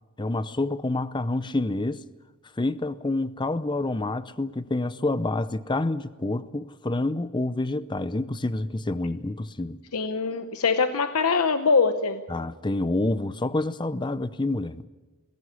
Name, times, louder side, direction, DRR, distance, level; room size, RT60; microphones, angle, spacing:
voice 1, 0.2-2.0 2.6-9.8 12.3-14.9, left 2 dB, 20° left, 0.7 m, -28 dB
voice 2, 9.9-12.2, left 5 dB, 85° left, 0.9 m, -23 dB
21.5 x 16.5 x 9.9 m
head